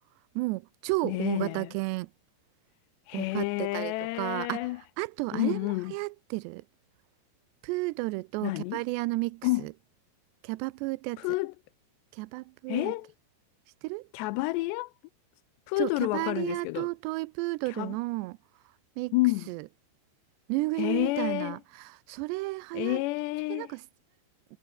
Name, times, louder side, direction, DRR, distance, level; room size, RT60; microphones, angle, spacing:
voice 1, 0.4-2.1 3.1-6.6 7.6-9.7 10.4-11.3 12.1-13.0 13.8-14.1 15.8-18.4 19.0-19.1 19.5-19.7 20.5-23.0 23.5-23.8, right 23 dB, 80° right, 2.7 m, -33 dB
voice 2, 1.0-1.7 3.1-4.8 5.3-5.9 8.4-8.8 9.4-9.6 11.2-11.5 12.7-13.1 14.1-14.9 15.7-16.9 17.7-18.0 19.1-19.5 20.8-21.6 22.7-23.7, left 21 dB, 80° left, 2.7 m, -29 dB
omnidirectional pair, 5.1 m